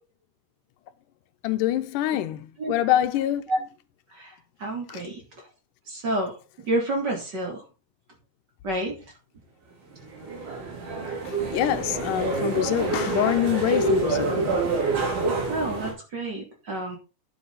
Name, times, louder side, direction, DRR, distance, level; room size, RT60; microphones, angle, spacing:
voice 1, 1.4-3.4 4.9-5.0 11.3-14.5, left 12 dB, 90° left, 2.3 m, -25 dB
voice 2, 4.6-5.2 5.9-6.3 6.6-7.6 8.6-9.0 15.5-17.0, right 1 dB, 35° right, 2.7 m, -28 dB
sound 1, 9.9-15.9, right 3 dB, 75° right, 5.0 m, -27 dB
10.0 x 7.9 x 4.0 m
omnidirectional pair, 3.6 m